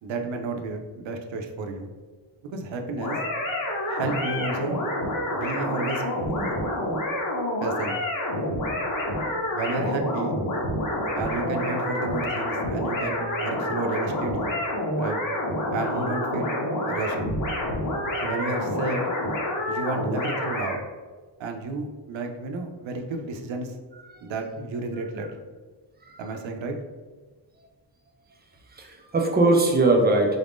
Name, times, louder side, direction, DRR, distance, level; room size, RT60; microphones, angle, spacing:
voice 1, 0.0-1.9 2.5-3.2 3.9-4.8 5.3-6.0 6.3-6.6 7.6-8.0 9.5-10.4 11.1-14.5 15.0-15.2 15.7-16.6 16.9-17.2 18.2-19.1 19.7-20.8 21.4-23.8 24.2-25.3 26.2-26.8, right 3 dB, 80° right, 4 dB, 0.6 m, -31 dB
sound 1, 3.0-20.8, left 1 dB, 45° left, 0.8 m, -28 dB
voice 2, 26.0-26.4 28.7-30.4, right 2 dB, 25° right, 2 dB, 0.3 m, -21 dB
3.9 x 2.5 x 3.5 m, 1.4 s
wide cardioid pair, 180°, 46 cm